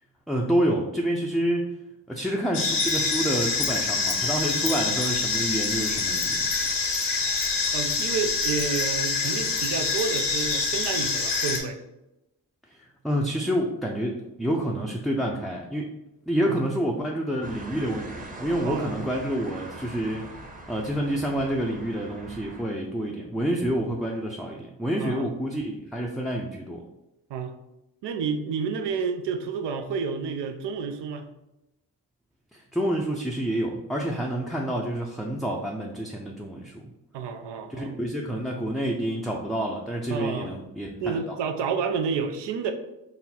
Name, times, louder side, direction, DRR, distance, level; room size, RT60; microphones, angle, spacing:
voice 1, 0.3-1.7 2.1-6.4 13.0-15.9 16.3-20.3 20.7-26.8 32.5-36.8 37.7-41.2, right 1 dB, ahead, -1 dB, 0.4 m, -28 dB
sound 1, 2.5-11.6, left 4 dB, 75° left, 0.9 m, -26 dB
voice 2, 7.7-11.8 16.4-16.6 18.6-18.9 25.0-25.3 27.3-27.5 28.0-31.3 37.1-37.9 40.1-40.6 41.0-42.7, right 5 dB, 80° right, 6 dB, 0.6 m, -30 dB
sound 2, 17.4-22.6, right 1 dB, 20° right, 0.8 m, -41 dB
4.0 x 2.1 x 4.1 m, 0.92 s
cardioid pair, 55°, 41 cm